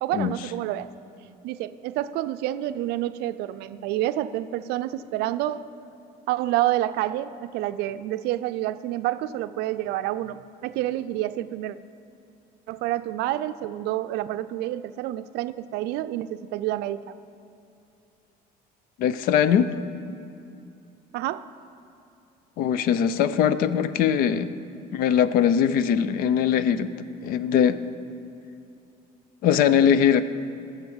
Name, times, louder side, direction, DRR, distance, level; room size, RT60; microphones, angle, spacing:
voice 1, 0.0-0.9 1.4-5.6 6.3-11.8 12.7-17.2 21.1-21.4, right 14 dB, 85° right, 13 dB, 0.4 m, -28 dB
voice 2, 19.0-19.7 22.6-24.5 24.9-26.9 27.2-27.8 29.4-30.2, left 8 dB, 60° left, 14 dB, 0.5 m, -21 dB
12.0 x 7.3 x 7.1 m, 2.7 s
cardioid pair, 175°, 17 cm